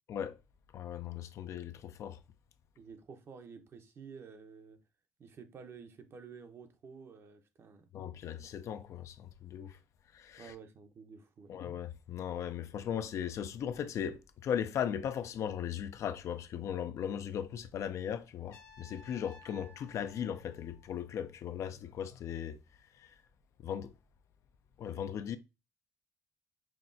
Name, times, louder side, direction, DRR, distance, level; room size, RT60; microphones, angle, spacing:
voice 1, 0.7-2.2 7.9-9.8 10.1-10.5 11.5-22.6 23.0-23.1 23.6-23.9 24.8-25.4, left 9 dB, 65° left, 0.4 m, -38 dB
voice 2, 2.8-4.8 5.2-7.9 10.4-11.6, right 5 dB, 50° right, 0.7 m, -51 dB
Trumpet, 18.5-21.5, left 3 dB, 80° left, 1.0 m, -58 dB
5.8 x 2.3 x 2.5 m
cardioid pair, 105°, 6 cm